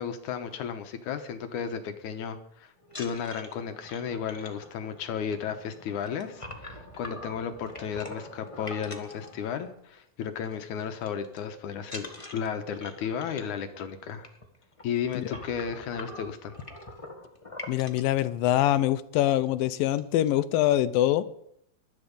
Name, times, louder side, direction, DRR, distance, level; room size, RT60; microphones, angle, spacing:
voice 1, 0.0-14.3 14.8-16.5, left 7 dB, 70° left, 8 dB, 2.4 m, -34 dB
sound 1, 2.8-10.0 10.3-10.5 10.8-11.4 11.8-18.2 18.9-19.0 19.3-19.5 19.7-20.3, left 1 dB, 30° left, 0.5 m, -44 dB
voice 2, 17.7-21.3, left 13 dB, 90° left, 14 dB, 2.5 m, -24 dB
20.0 x 12.0 x 5.3 m, 0.72 s
omnidirectional pair, 3.9 m